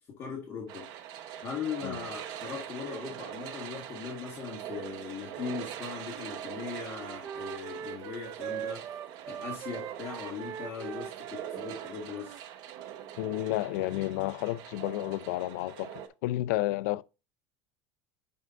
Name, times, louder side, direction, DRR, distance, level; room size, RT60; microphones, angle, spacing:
voice 1, 0.1-0.9 1.4-8.9 9.3-12.5, left 6 dB, 30° left, 1.5 m, -39 dB
sound 1, 0.7-16.1, right 10 dB, 50° right, 1.0 m, -43 dB
Wind instrument woodwind instrument, 6.1-12.4, right 9 dB, 35° right, 0.5 m, -41 dB
voice 2, 13.2-17.0, left 16 dB, 75° left, 0.5 m, -31 dB
9.5 x 5.4 x 2.6 m
cardioid pair, 165°, 9 cm